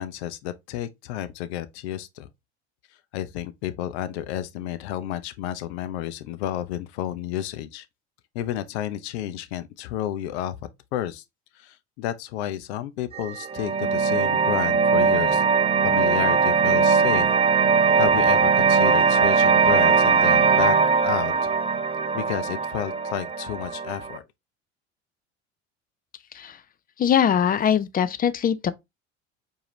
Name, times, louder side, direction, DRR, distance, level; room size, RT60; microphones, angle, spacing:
voice 1, 0.0-2.3 3.1-7.9 8.3-10.6 10.9-11.2 11.6-15.4 15.8-17.3 18.0-20.8 21.0-21.5 22.1-24.2, left 12 dB, 75° left, 0.6 m, -31 dB
sound 1, 13.1-24.2, right 5 dB, 15° right, 0.6 m, -20 dB
voice 2, 27.0-28.7, left 8 dB, 25° left, 0.4 m, -22 dB
4.6 x 2.7 x 3.1 m
hypercardioid pair, 75°, 33 cm